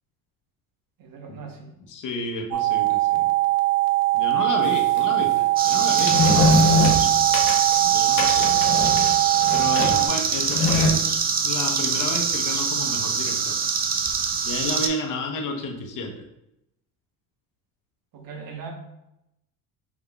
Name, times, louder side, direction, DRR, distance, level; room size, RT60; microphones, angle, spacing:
voice 1, 1.0-1.7 6.0-7.2 9.8-10.1 18.1-18.7, right 5 dB, 55° right, 3 dB, 1.0 m, -41 dB
voice 2, 1.9-3.3 4.1-6.3 7.8-8.7 9.5-11.0 11.4-13.6 14.4-16.2, left 2 dB, 50° left, 3 dB, 0.9 m, -31 dB
sound 1, 2.5-10.1, right 19 dB, 85° right, 0.6 m, -21 dB
sound 2, 4.8-5.0 6.0-7.7 8.1-10.1 10.4-10.9, left 2 dB, 80° left, 0.9 m, -22 dB
sound 3, 5.6-14.9, right 6 dB, 25° right, 0.4 m, -24 dB
4.7 x 3.5 x 2.3 m, 0.85 s
supercardioid pair, 80°, 41 cm